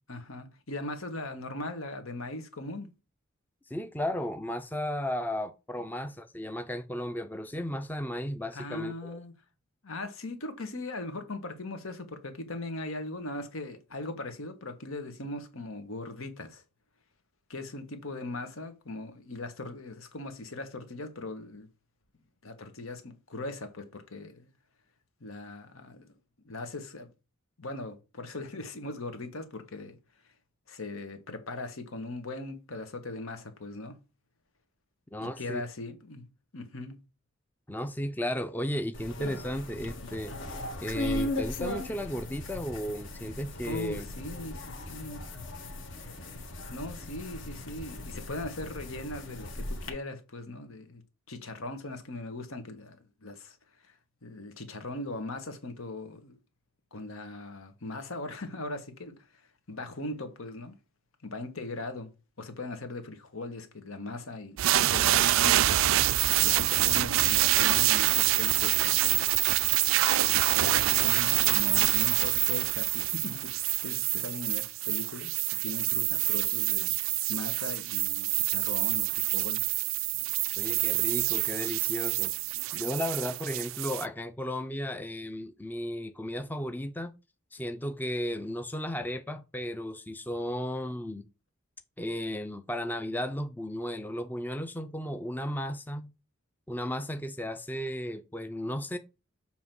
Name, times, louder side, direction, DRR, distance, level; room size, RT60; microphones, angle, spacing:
voice 1, 0.1-2.9 8.5-9.3 9.8-16.6 17.5-21.7 22.4-24.5 25.2-26.2 26.4-27.1 27.6-30.0 30.7-34.0 35.2-36.2 36.5-37.0 43.6-45.2 46.7-51.0 51.3-53.6 54.2-56.4 56.9-59.1 59.7-60.8 61.2-62.1 62.4-65.8 66.4-69.3 70.5-75.3 75.6-76.9 77.3-79.6, left 2 dB, 85° left, 1.4 m, -39 dB
voice 2, 3.7-9.2 35.1-35.6 37.7-40.3 40.8-44.1 80.6-82.3 82.7-87.1 87.5-91.3 92.0-96.1 96.7-99.0, equal, 10° left, 0.4 m, -34 dB
sound 1, 38.9-49.9, left 1 dB, 65° left, 1.5 m, -38 dB
sound 2, 64.6-84.0, right 15 dB, 75° right, 0.3 m, -26 dB
7.2 x 3.0 x 6.0 m
head